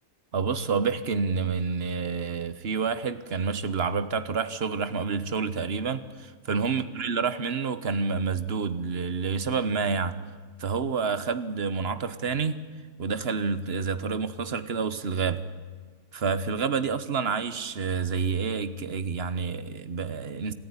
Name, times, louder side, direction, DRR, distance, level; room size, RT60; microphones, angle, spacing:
voice 1, 0.3-10.2 10.6-12.6 13.0-15.4 16.1-20.5, right 5 dB, 50° right, 1.3 m, -28 dB
26.5 x 14.5 x 9.9 m
omnidirectional pair, 1.5 m